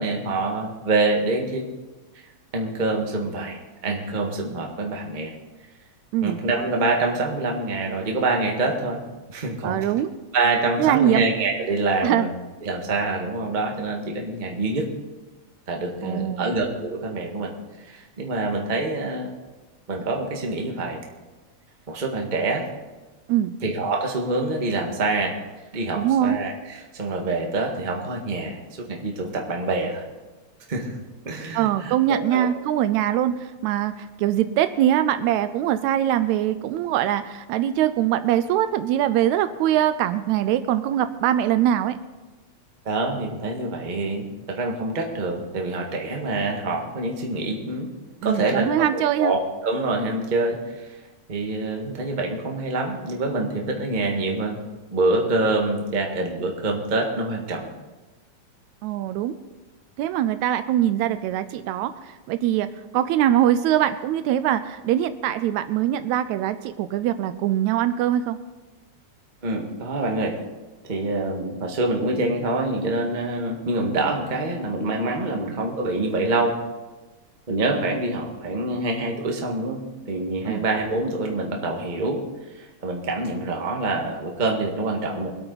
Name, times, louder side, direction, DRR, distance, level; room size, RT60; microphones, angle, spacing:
voice 1, 0.0-1.7 2.5-5.3 6.2-9.0 9.3-9.8 10.3-12.3 12.6-14.9 15.7-17.5 17.8-19.3 19.9-21.0 21.9-22.7 23.6-25.4 25.7-30.0 30.7-31.0 31.2-32.5 42.8-47.9 48.2-51.0 51.3-54.6 54.9-57.7 69.4-70.4 70.8-76.6 77.5-82.2 82.5-85.3, right 2 dB, 25° right, 1 dB, 1.1 m, -26 dB
voice 2, 9.6-10.1 10.8-11.3 12.0-12.3 16.0-16.6 23.3-23.6 25.9-26.4 31.5-42.0 48.2-49.3 58.8-59.4 60.0-62.7 62.9-68.4 75.3-75.5 80.5-80.7, right 11 dB, 80° right, 11 dB, 1.9 m, -22 dB
23.5 x 8.6 x 4.0 m, 1.2 s
omnidirectional pair, 3.4 m